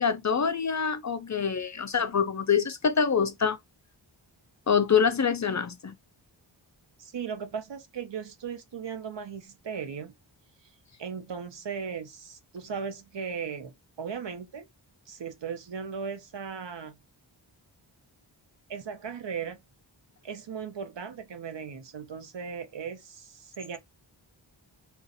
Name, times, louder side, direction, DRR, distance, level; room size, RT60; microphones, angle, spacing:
voice 1, 0.0-3.6 4.7-5.9, left 6 dB, 40° left, 0.4 m, -25 dB
voice 2, 7.0-10.1 11.0-14.7 15.1-17.0 18.7-19.6 20.2-23.8, right 6 dB, 60° right, 0.8 m, -37 dB
2.4 x 2.4 x 4.0 m
cardioid pair, 45°, 48 cm